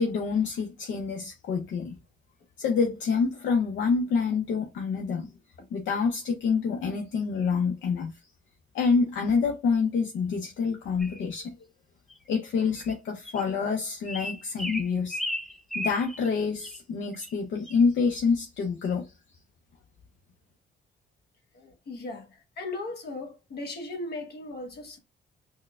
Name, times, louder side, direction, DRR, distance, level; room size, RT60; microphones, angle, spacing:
voice 1, 0.0-2.0 2.6-5.3 5.7-8.2 8.7-11.6 12.3-15.2 15.7-19.1, left 5 dB, 70° left, 0.7 m, -27 dB
sound 1, 11.0-11.2 12.1-12.2 12.8-12.9 13.2-13.4 14.1-16.3 16.6-16.8 17.1-17.3 17.7-17.8, equal, ahead, 0.4 m, -35 dB
voice 2, 21.5-25.0, left 2 dB, 55° left, 1.1 m, -37 dB
4.5 x 2.2 x 2.3 m
cardioid pair, 90°, 20 cm